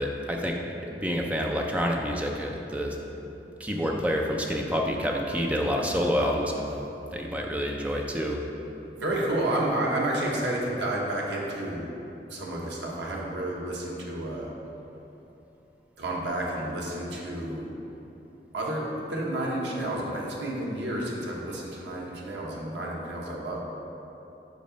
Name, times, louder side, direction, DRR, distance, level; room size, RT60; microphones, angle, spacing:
voice 1, 0.0-3.0 3.6-6.8 7.1-8.4, equal, 10° right, 0 dB, 0.4 m, -28 dB
voice 2, 9.0-11.9 12.3-14.5 16.0-17.7 18.5-23.6, right 1 dB, 85° right, -3 dB, 1.1 m, -30 dB
5.4 x 4.8 x 5.0 m, 3.0 s
head